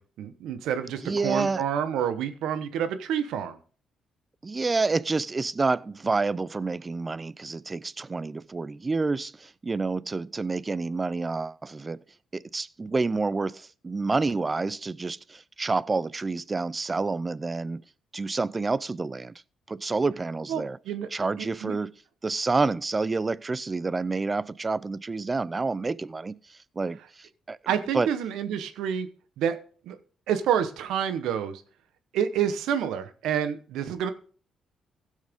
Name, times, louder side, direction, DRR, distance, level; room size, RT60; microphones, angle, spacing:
voice 1, 0.0-3.6 20.5-21.1 21.4-21.7 27.7-29.1 29.4-29.6 29.9-30.0 30.3-31.6 32.1-34.1, right 8 dB, 85° right, 1.0 m, -28 dB
voice 2, 1.0-1.6 4.4-12.0 12.3-17.8 18.1-19.3 19.7-20.8 21.1-21.9 22.2-28.1, right 3 dB, 25° right, 0.4 m, -28 dB
16.0 x 6.4 x 3.6 m
cardioid pair, 90°, 0 cm